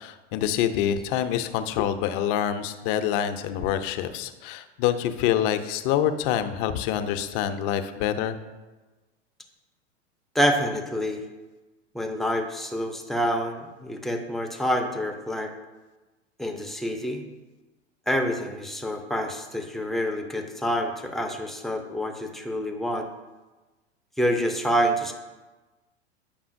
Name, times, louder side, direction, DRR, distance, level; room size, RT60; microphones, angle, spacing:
voice 1, 0.0-8.4, left 10 dB, 50° left, 9 dB, 0.6 m, -26 dB
voice 2, 10.3-11.2 11.9-15.5 16.4-17.2 18.1-23.1 24.2-25.1, equal, ahead, 3 dB, 0.5 m, -27 dB
8.7 x 5.4 x 2.6 m, 1.2 s
hypercardioid pair, 95°, 35 cm